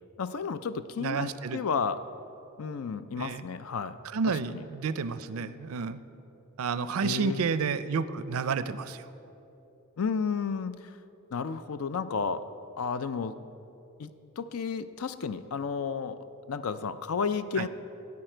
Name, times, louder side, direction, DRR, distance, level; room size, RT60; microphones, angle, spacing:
voice 1, 0.2-2.0 2.6-4.0 4.3-4.6 7.0-7.5 10.0-10.9 11.3-12.5 12.8-13.4 14.0-16.2 16.5-17.7, left 5 dB, 75° left, 12 dB, 0.5 m, -32 dB
voice 2, 1.0-1.6 3.2-3.4 4.0-6.0 6.6-9.1 17.6-17.7, right 5 dB, 75° right, 13 dB, 0.4 m, -30 dB
14.0 x 9.5 x 4.4 m, 2.9 s
head